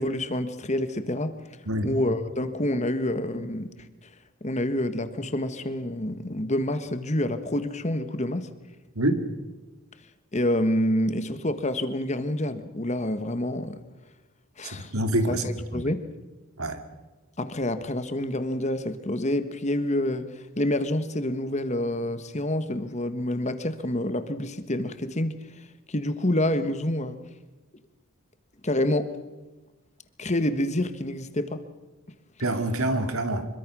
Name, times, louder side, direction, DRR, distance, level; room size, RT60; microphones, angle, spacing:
voice 1, 0.0-1.4 1.8-3.7 4.0-4.1 4.4-8.5 10.3-13.8 14.6-14.9 15.3-16.0 17.4-27.2 28.6-29.2 30.2-31.6, left 1 dB, 30° left, 1.5 m, -27 dB
voice 2, 1.7-2.0 8.9-9.2 14.6-15.5 15.7-15.9 16.6-16.8 32.4-33.5, right 1 dB, 85° right, 2.6 m, -26 dB
25.5 x 23.0 x 6.3 m
head